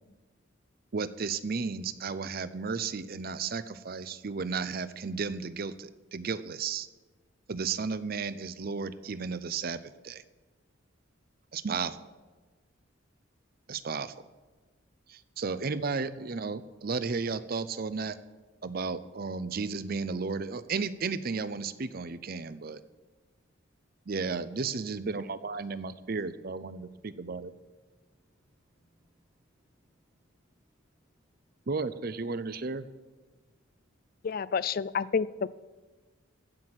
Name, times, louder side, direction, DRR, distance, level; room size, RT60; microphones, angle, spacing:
voice 1, 0.9-6.9 7.5-10.2 11.5-12.0 13.7-14.1 15.1-18.2 18.6-22.8 24.1-27.5 31.7-32.8, right 4 dB, 45° right, 14 dB, 0.6 m, -34 dB
voice 2, 24.6-25.2 25.6-25.7 26.8-31.7 33.4-33.9, equal, 10° right, -5 dB, 1.5 m, -69 dB
voice 3, 34.2-35.5, left 6 dB, 45° left, 18 dB, 0.3 m, -29 dB
15.5 x 6.2 x 7.4 m, 1.3 s
head